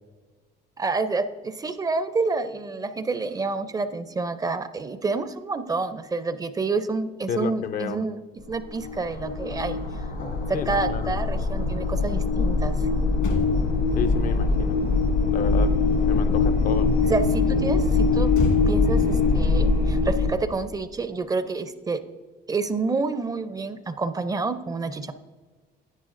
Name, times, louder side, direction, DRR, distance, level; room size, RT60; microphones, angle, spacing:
voice 1, 0.8-8.2 8.5-9.8 10.5-12.9 17.1-18.3 18.7-22.0 22.5-25.1, right 3 dB, 20° right, 0.4 m, -28 dB
voice 2, 7.3-8.0 10.5-11.1 14.0-14.8 15.3-17.0, left 7 dB, 55° left, 0.5 m, -31 dB
sound 1, 8.4-20.3, left 4 dB, 85° left, 2.5 m, -22 dB
Motor vehicle (road), 13.1-16.7 18.3-20.9 21.2-21.4, left 3 dB, 70° left, 1.6 m, -33 dB
10.5 x 8.8 x 2.5 m
cardioid pair, 110°, 17 cm